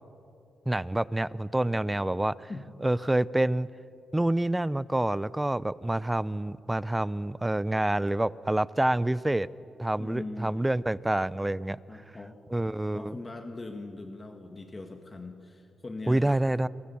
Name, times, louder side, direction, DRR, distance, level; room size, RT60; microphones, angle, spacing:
voice 1, 0.7-2.5 2.8-3.7 4.1-9.5 9.8-11.8 12.5-13.1 16.1-16.7, right 1 dB, 10° right, 19 dB, 0.5 m, -27 dB
voice 2, 10.0-10.6 11.9-12.4 12.9-16.4, left 2 dB, 25° left, 5 dB, 1.8 m, -41 dB
28.0 x 23.0 x 7.1 m, 2.7 s
cardioid pair, 95°, 0 cm